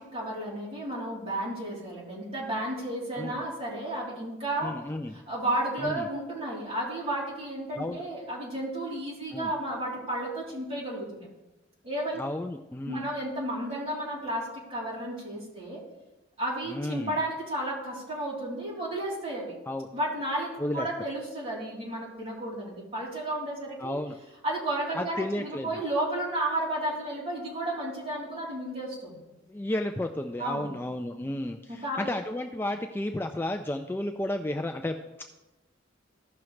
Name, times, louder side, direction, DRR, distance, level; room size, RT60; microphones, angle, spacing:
voice 1, 0.0-4.8 5.1-11.3 11.8-12.2 12.9-15.8 16.4-19.6 19.9-24.0 24.4-29.2 30.4-30.7 31.7-32.1, right 1 dB, 30° right, -6 dB, 3.4 m, -32 dB
voice 2, 4.6-5.2 5.8-6.1 7.8-8.0 9.3-9.5 12.2-13.0 16.7-17.1 19.7-19.9 20.6-20.9 23.8-24.2 24.9-25.7 29.5-35.2, left 1 dB, 10° left, 5 dB, 0.3 m, -32 dB
15.0 x 5.9 x 3.2 m, 1.0 s
head